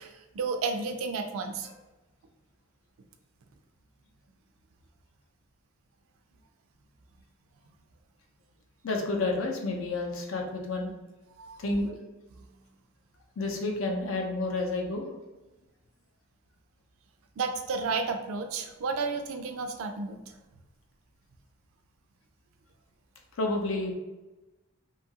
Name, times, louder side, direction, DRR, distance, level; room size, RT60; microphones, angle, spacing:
voice 1, 0.0-1.7 11.4-11.6 12.3-12.5 17.4-20.4, right 4 dB, 85° right, 6 dB, 0.4 m, -32 dB
voice 2, 8.8-10.9 11.6-11.9 13.4-15.1 23.4-23.9, left 2 dB, 75° left, 2 dB, 0.5 m, -30 dB
2.7 x 2.3 x 2.7 m, 1.1 s
head